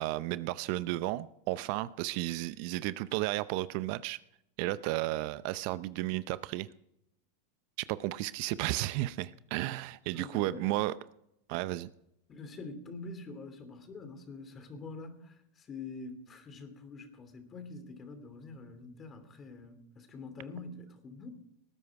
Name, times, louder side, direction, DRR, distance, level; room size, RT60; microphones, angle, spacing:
voice 1, 0.0-4.2 4.6-6.7 7.9-10.9 11.5-11.9, right 17 dB, 60° right, 16 dB, 0.6 m, -33 dB
voice 2, 10.1-10.9 12.3-21.3, left 3 dB, 30° left, 9 dB, 2.9 m, -46 dB
19.0 x 9.7 x 4.8 m, 0.77 s
hypercardioid pair, 105°, 0 cm